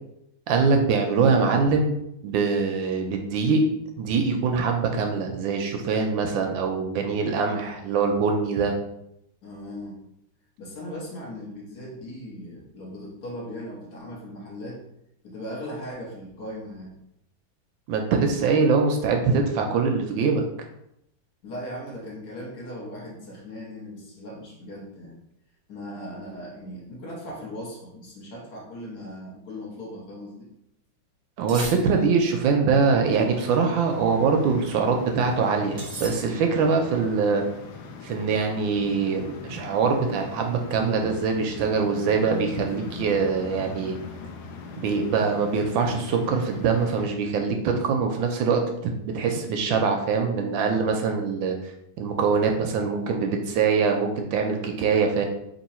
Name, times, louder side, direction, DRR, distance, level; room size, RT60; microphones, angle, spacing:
voice 1, 0.5-3.6 4.0-8.7 17.9-20.4 31.4-37.4 38.0-44.0 44.7-48.6 49.0-51.7 52.0-55.2, right 5 dB, 75° right, 3 dB, 1.2 m, -23 dB
voice 2, 9.4-10.0 10.6-14.8 15.2-17.0 21.4-25.2 25.7-30.5, equal, 55° left, -3 dB, 1.5 m, -38 dB
sound 1, 31.5-32.4 35.8-36.7, right 2 dB, 35° right, 0.9 m, -38 dB
sound 2, 33.3-47.1, left 5 dB, 75° left, 0.9 m, -41 dB
3.7 x 2.9 x 4.2 m, 0.79 s
omnidirectional pair, 2.2 m